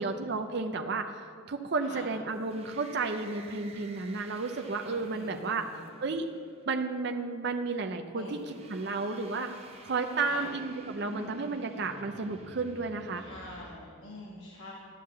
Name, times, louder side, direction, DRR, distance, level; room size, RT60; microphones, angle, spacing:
voice 1, 0.0-6.3 6.7-9.5 9.8-13.2, right 3 dB, 50° right, 5 dB, 0.5 m, -32 dB
voice 2, 1.8-2.1 5.1-5.9 8.1-8.5 10.2-10.5 13.2-14.7, left 1 dB, 60° left, -5 dB, 1.4 m, -45 dB
sound 1, 2.3-6.8 8.3-13.8, right 2 dB, 30° right, 0.9 m, -50 dB
11.5 x 5.8 x 7.5 m, 2.2 s
head